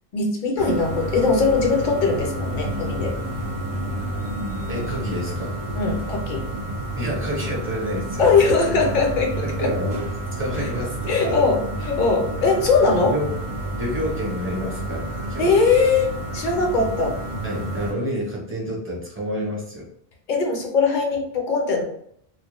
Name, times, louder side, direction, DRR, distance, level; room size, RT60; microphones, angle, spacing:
voice 1, 0.1-3.1 5.7-6.5 8.2-9.7 10.6-10.7 11.1-13.1 15.4-17.2 20.3-21.8, left 4 dB, 55° left, 1 dB, 0.7 m, -20 dB
sound 1, 0.6-17.9, right 1 dB, 50° right, 0.7 m, -30 dB
voice 2, 4.7-5.6 7.0-8.2 9.4-11.4 13.0-13.3 13.7-15.5 17.4-19.9, equal, 15° right, -4 dB, 0.6 m, -29 dB
2.1 x 2.1 x 2.9 m, 0.70 s
omnidirectional pair, 1.0 m